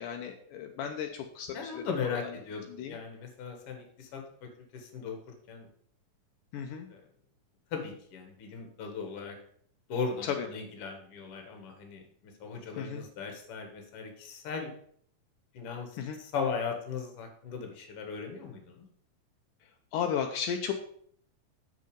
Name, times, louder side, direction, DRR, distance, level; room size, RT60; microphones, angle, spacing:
voice 1, 0.0-2.3 2.7-3.0 6.5-6.9 10.2-10.5 12.8-13.1 16.0-16.2 19.9-20.7, left 8 dB, 80° left, 4 dB, 2.2 m, -34 dB
voice 2, 1.5-5.2 5.5-5.7 6.9-7.0 7.7-9.4 9.9-12.0 12.4-14.7 15.5-15.9 16.2-18.8, left 5 dB, 50° left, 3 dB, 2.1 m, -38 dB
7.7 x 6.6 x 5.1 m, 0.62 s
omnidirectional pair, 3.8 m